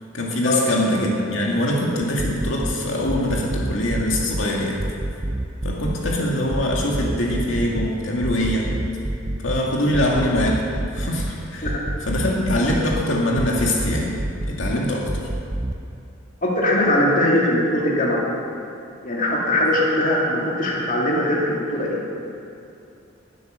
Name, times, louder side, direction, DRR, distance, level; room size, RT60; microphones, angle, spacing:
voice 1, 0.1-4.8 5.6-8.7 9.4-10.6 10.9-11.7 12.0-14.1 14.5-15.1, left 1 dB, 75° left, -2 dB, 2.2 m, -23 dB
sound 1, 2.2-2.8 3.1-4.5 4.8-6.2 6.5-7.9 8.2-9.6 9.9-11.3 11.6-13.0 13.4-14.8 15.1-15.7, right 1 dB, 20° right, 0.5 m, -27 dB
voice 2, 16.4-18.2 19.0-22.0, left 1 dB, 45° left, -3 dB, 2.4 m, -21 dB
20.5 x 8.1 x 6.6 m, 2.6 s
head